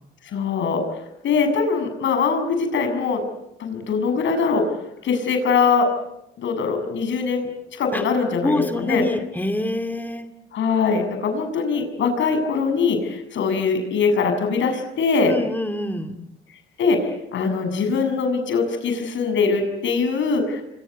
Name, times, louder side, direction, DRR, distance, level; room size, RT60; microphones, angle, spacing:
voice 1, 0.3-0.8 1.2-3.2 3.6-4.6 5.0-5.9 6.4-9.0 10.5-15.3 16.8-20.6, left 5 dB, 70° left, 6 dB, 7.2 m, -22 dB
voice 2, 8.4-10.3 15.2-16.2, left 1 dB, 10° left, 6 dB, 2.5 m, -26 dB
28.5 x 25.0 x 8.3 m, 0.86 s
cardioid pair, 90°, 20 cm